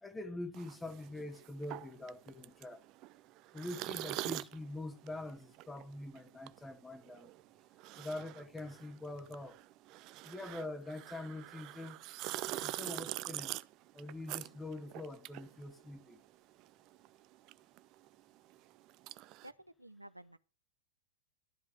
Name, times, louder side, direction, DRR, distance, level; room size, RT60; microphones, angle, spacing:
voice 1, 0.0-2.8 3.5-7.3 8.0-9.6 10.2-12.0 12.6-13.6 13.9-16.2, left 2 dB, 10° left, 1.2 m, -44 dB
sound 1, 0.5-16.3 16.6-19.5, right 17 dB, 40° right, 0.4 m, -45 dB
voice 2, 19.4-20.4, right 1 dB, 85° right, 0.6 m, -53 dB
12.5 x 5.2 x 7.4 m
figure-of-eight pair, 90°, 0 cm